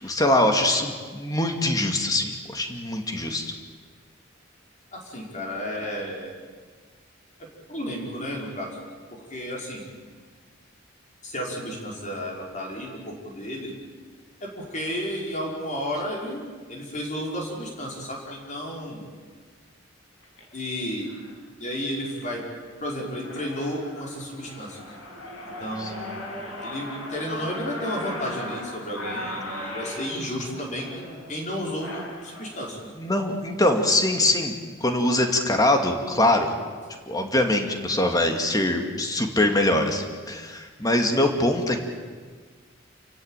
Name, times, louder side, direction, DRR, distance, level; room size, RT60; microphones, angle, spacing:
voice 1, 0.0-3.5 25.8-25.9 33.0-34.6 34.8-36.5 37.1-41.8, left 1 dB, 20° left, 4 dB, 2.4 m, -23 dB
voice 2, 4.9-6.3 7.7-8.7 9.1-9.8 11.2-13.7 14.4-19.1 20.5-21.1 21.6-22.4 22.8-24.8 25.6-26.2 26.6-32.8, equal, 40° left, -1 dB, 5.5 m, -32 dB
sound 1, 20.2-20.4 21.1-21.3 21.8-22.2 22.7-22.8 23.0-32.4, left 1 dB, 85° left, 6.6 m, -38 dB
29.0 x 16.0 x 9.2 m, 1.5 s
head